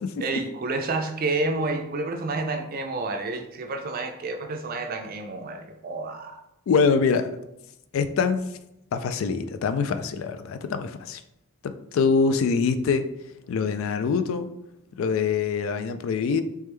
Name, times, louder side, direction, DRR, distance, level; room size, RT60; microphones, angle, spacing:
voice 1, 0.2-6.4, right 3 dB, 40° right, 5 dB, 0.4 m, -29 dB
voice 2, 6.7-7.4 7.9-8.4 8.9-11.2 11.6-13.1 13.5-14.5 15.0-16.4, left 5 dB, 65° left, 10 dB, 0.3 m, -24 dB
3.5 x 3.2 x 3.2 m, 0.85 s
head